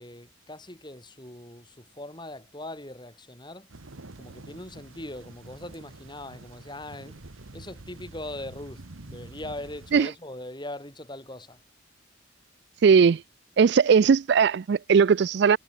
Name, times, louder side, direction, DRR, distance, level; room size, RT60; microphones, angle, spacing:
voice 1, 0.0-3.7 4.2-7.2 7.5-11.6, left 1 dB, 20° left, 5.6 m, -40 dB
sound 1, 3.7-10.0, right 2 dB, 85° right, 1.4 m, -47 dB
voice 2, 12.8-13.2 13.6-15.6, right 6 dB, 55° right, 0.3 m, -19 dB
head